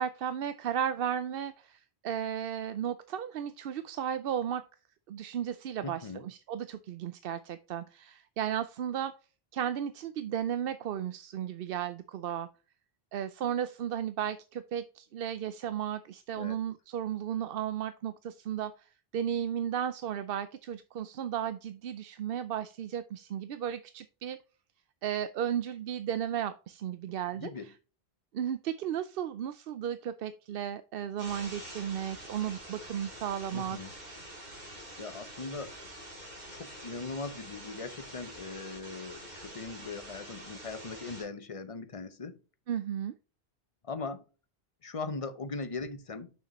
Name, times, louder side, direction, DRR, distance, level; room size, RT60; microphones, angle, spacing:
voice 1, 0.0-4.6 5.1-9.1 9.5-12.5 13.1-24.4 25.0-27.7 28.3-33.8 42.7-43.1, right 9 dB, 70° right, 0.7 m, -34 dB
voice 2, 5.8-6.3 16.3-16.6 27.3-27.7 33.5-33.9 35.0-35.8 36.5-42.4 43.8-44.2 44.8-46.3, left 4 dB, 35° left, 0.8 m, -40 dB
sound 1, 31.2-41.2, right 1 dB, 45° right, 2.6 m, -46 dB
6.6 x 6.5 x 3.0 m
omnidirectional pair, 1.0 m